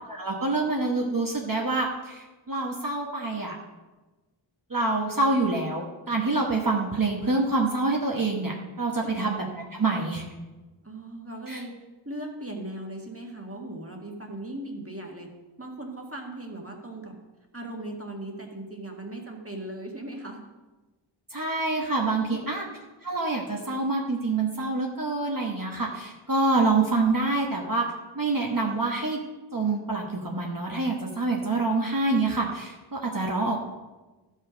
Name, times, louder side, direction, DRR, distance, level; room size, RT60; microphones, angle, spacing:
voice 1, 0.1-3.6 4.7-9.4 9.8-10.2 11.5-11.6 21.3-22.6 23.0-27.8 28.1-29.2 29.5-33.6, right 3 dB, 45° right, -1 dB, 1.3 m, -26 dB
voice 2, 10.8-15.3 15.6-17.2 17.5-20.4 22.1-22.6, right 1 dB, 30° right, 1 dB, 1.8 m, -38 dB
13.0 x 5.6 x 5.1 m, 1.2 s
wide cardioid pair, 45°, 46 cm